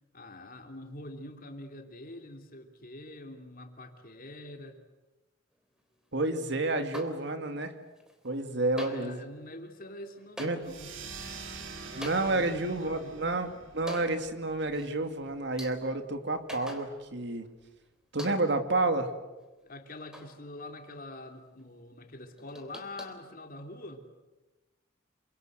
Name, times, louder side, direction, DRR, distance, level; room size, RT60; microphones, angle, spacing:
voice 1, 0.1-4.8 8.7-11.0 11.9-13.2 19.6-24.0, left 1 dB, 50° left, 4 dB, 3.2 m, -45 dB
voice 2, 6.1-7.7 8.2-9.2 10.4-10.6 12.0-17.5 18.1-19.1, right 2 dB, 65° right, 7 dB, 2.5 m, -30 dB
sound 1, 6.9-7.7 8.0-8.5 8.8-17.4 17.6-17.7 18.2-18.7 19.2-20.9 21.2-21.3 21.6-21.7 22.0-24.0, equal, 5° right, 3.5 m, -48 dB
sound 2, 10.6-15.7, right 4 dB, 85° right, 3.4 m, -46 dB
28.5 x 25.5 x 8.1 m, 1.1 s
head